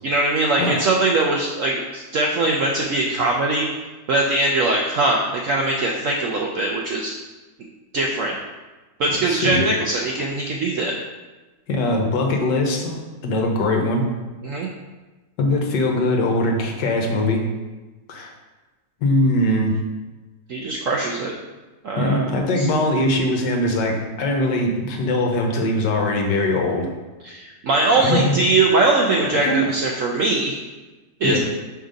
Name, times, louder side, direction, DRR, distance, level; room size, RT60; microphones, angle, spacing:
voice 1, 0.0-3.7 4.1-7.1 7.9-8.4 9.0-10.9 14.4-14.7 20.5-21.3 21.8-22.3 22.6-22.7 27.2-30.5 31.2-31.4, right 2 dB, 70° right, -1 dB, 0.7 m, -21 dB
voice 2, 9.3-9.7 11.7-13.0 13.2-14.1 15.4-17.4 18.1-18.3 19.0-19.7 22.0-26.9 28.0-28.4 29.2-29.6 31.2-31.4, left 1 dB, 75° left, 2 dB, 1.5 m, -21 dB
5.2 x 3.9 x 5.1 m, 1.2 s
omnidirectional pair, 2.0 m